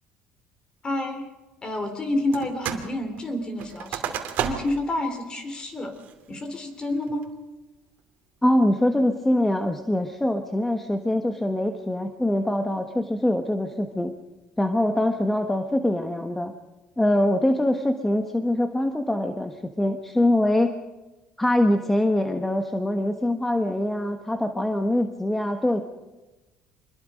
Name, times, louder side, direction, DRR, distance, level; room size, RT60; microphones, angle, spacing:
voice 1, 0.8-1.3 1.6-5.9 6.3-7.3, left 1 dB, 25° left, 7 dB, 3.9 m, -29 dB
sound 1, 2.3-2.9 3.2-4.9 5.3-5.4 5.9-6.3 6.8-7.2, right 10 dB, 60° right, 2.6 m, -32 dB
voice 2, 8.4-14.1 14.6-16.5 17.0-20.7 21.4-25.8, left 1 dB, 5° left, 6 dB, 1.3 m, -23 dB
25.5 x 21.5 x 5.2 m, 1.1 s
cardioid pair, 125°, 3 cm